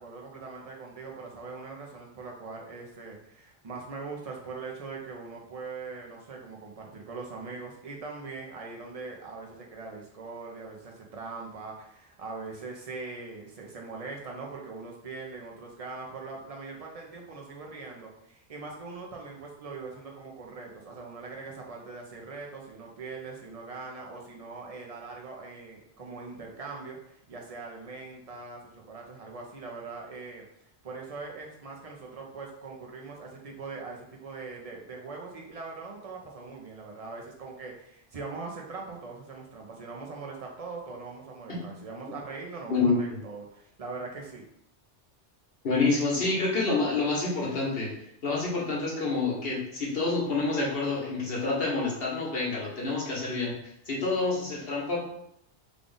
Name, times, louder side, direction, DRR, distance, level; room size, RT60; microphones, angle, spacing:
voice 1, 0.0-30.4 30.8-44.4, right 4 dB, 40° right, 0 dB, 0.7 m, -41 dB
voice 2, 42.7-43.0 45.6-47.9 48.2-53.6 53.9-55.0, left 3 dB, 60° left, -3 dB, 1.3 m, -28 dB
3.5 x 2.4 x 3.8 m, 0.73 s
omnidirectional pair, 1.2 m